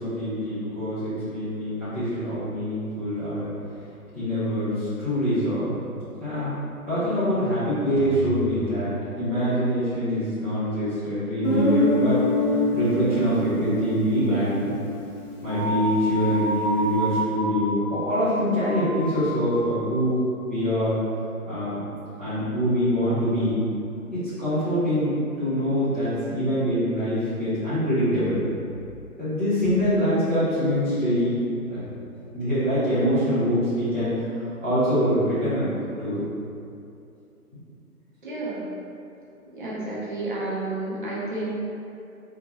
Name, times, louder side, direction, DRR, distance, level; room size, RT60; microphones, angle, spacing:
voice 1, 0.0-3.5 4.1-5.8 6.2-6.5 6.9-12.2 12.5-14.7 15.4-20.2 20.5-20.9 21.5-21.8 22.2-23.6 24.1-28.4 29.2-31.4 31.7-31.8 32.3-35.7 36.0-36.2, equal, 10° left, -18 dB, 0.7 m, -24 dB
sound 1, 8.0-10.1, right 4 dB, 65° right, 1.0 m, -37 dB
Guitar, 11.4-16.0, left 1 dB, 55° left, 1.2 m, -25 dB
sound 2, 15.5-20.1, right 1 dB, 35° left, 0.4 m, -30 dB
voice 2, 38.2-38.7 39.5-41.5, right 2 dB, 35° right, -7 dB, 0.8 m, -31 dB
4.7 x 2.5 x 2.8 m, 2.7 s
figure-of-eight pair, 140°, 45 cm